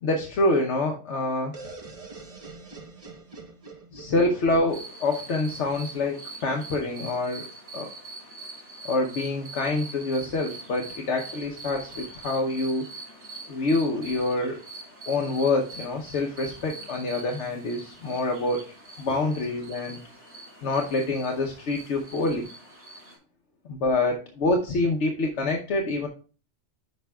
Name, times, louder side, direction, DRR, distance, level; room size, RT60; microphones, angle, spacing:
voice 1, 0.0-1.6 3.9-7.5 7.7-7.9 8.8-12.9 13.5-14.6 15.0-18.6 19.0-20.0 20.6-22.5 23.7-26.1, left 2 dB, 70° left, 1 dB, 1.1 m, -26 dB
sound 1, 1.5-5.3, right 3 dB, 30° right, 0.9 m, -44 dB
sound 2, 4.7-23.2, right 3 dB, 70° right, 4.3 m, -43 dB
10.5 x 6.1 x 2.3 m, 0.37 s
omnidirectional pair, 1.2 m